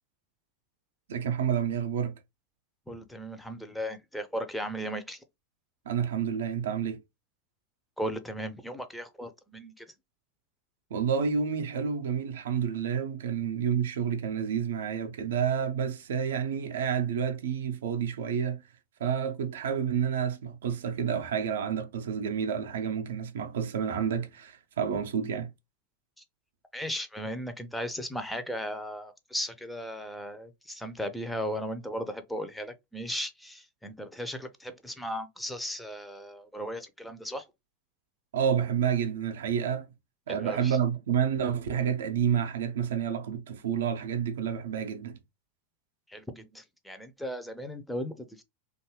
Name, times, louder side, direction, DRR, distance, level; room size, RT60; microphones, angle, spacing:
voice 1, 1.1-2.1 5.9-7.0 10.9-18.6 19.0-25.5 38.3-39.9 40.3-45.2, right 7 dB, 70° right, 0.4 m, -29 dB
voice 2, 2.9-5.2 8.0-9.9 26.7-37.4 40.4-40.8 46.1-48.4, equal, 5° left, 0.5 m, -36 dB
2.6 x 2.3 x 2.9 m
figure-of-eight pair, 90°, 0 cm